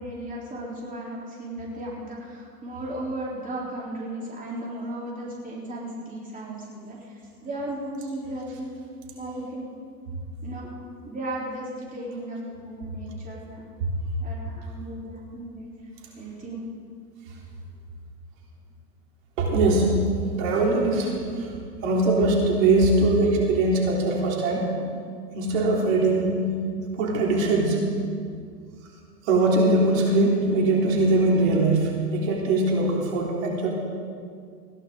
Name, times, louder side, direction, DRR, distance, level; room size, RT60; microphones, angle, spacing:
voice 1, 0.0-7.0 7.4-8.7 9.1-9.7 10.4-10.8 11.0-12.4 12.6-13.6 14.2-15.7 16.2-16.7, right 1 dB, 15° right, -4 dB, 3.9 m, -35 dB
voice 2, 19.4-19.9 20.4-21.5 21.8-24.7 25.3-26.5 26.9-27.8 29.2-33.7, right 2 dB, 50° right, -2 dB, 3.9 m, -21 dB
21.0 x 16.0 x 3.9 m, 2.2 s
hypercardioid pair, 110°, 50 cm